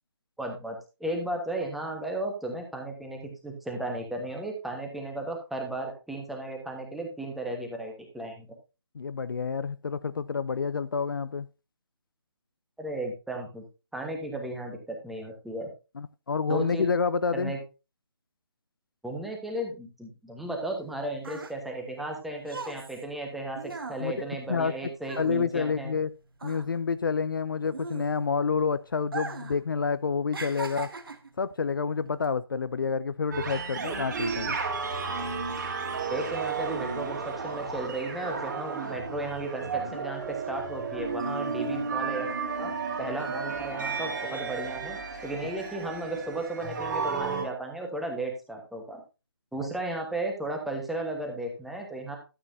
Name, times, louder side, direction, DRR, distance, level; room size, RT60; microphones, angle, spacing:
voice 1, 0.4-8.5 12.8-13.6 13.9-15.7 16.5-16.9 17.3-17.6 19.0-25.9 36.1-42.7 43.0-45.0 45.2-49.0 49.5-52.2, right 1 dB, ahead, 1.2 m, -35 dB
voice 2, 8.9-11.5 16.0-17.5 24.0-24.1 24.5-24.7 25.2-26.1 26.4-30.9 31.4-34.6, left 5 dB, 55° left, 0.4 m, -28 dB
sound 1, 20.7-26.1 26.3-28.5 29.0-29.6 29.9-31.4 32.1-32.3, right 4 dB, 60° right, 1.4 m, -39 dB
sound 2, 33.3-47.5, right 5 dB, 40° right, 2.7 m, -33 dB
12.5 x 8.1 x 2.6 m
figure-of-eight pair, 150°, 14 cm